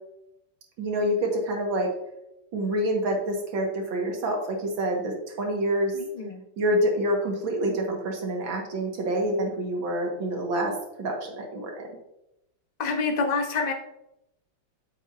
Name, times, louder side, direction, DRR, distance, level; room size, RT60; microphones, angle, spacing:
voice 1, 0.8-1.9 2.5-6.0 6.6-11.9, right 1 dB, 65° right, 1 dB, 2.3 m, -27 dB
voice 2, 5.9-6.4 12.8-13.7, left 4 dB, 40° left, 3 dB, 0.6 m, -27 dB
8.5 x 7.9 x 2.7 m, 0.85 s
omnidirectional pair, 2.3 m